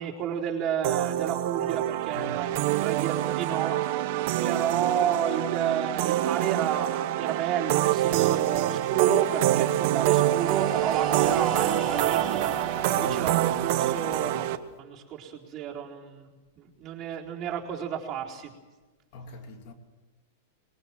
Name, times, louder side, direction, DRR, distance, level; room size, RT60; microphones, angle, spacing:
voice 1, 0.0-3.8 4.4-12.5 13.0-14.5 14.8-18.5, right 9 dB, 30° right, 4.1 m, -31 dB
sound 1, 0.8-14.6, right 13 dB, 55° right, 1.1 m, -26 dB
Breathing, 9.9-13.8, right 5 dB, 15° right, 3.9 m, -34 dB
voice 2, 12.9-13.4 19.1-19.7, left 2 dB, 55° left, 2.5 m, -41 dB
21.0 x 19.5 x 7.7 m
hypercardioid pair, 125°, 0 cm